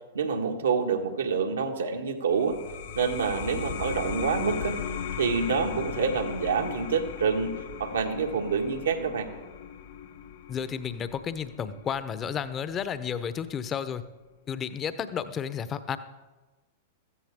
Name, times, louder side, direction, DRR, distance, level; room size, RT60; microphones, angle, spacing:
voice 1, 0.1-2.6 2.9-4.8 5.2-7.5 7.8-9.3, right 5 dB, 80° right, 3 dB, 1.6 m, -27 dB
sound 1, 2.3-13.5, left 7 dB, 65° left, 1.1 m, -38 dB
voice 2, 10.5-14.0 14.5-16.0, left 8 dB, 30° left, 13 dB, 0.9 m, -32 dB
15.5 x 14.5 x 3.7 m, 1.2 s
hypercardioid pair, 100°, 0 cm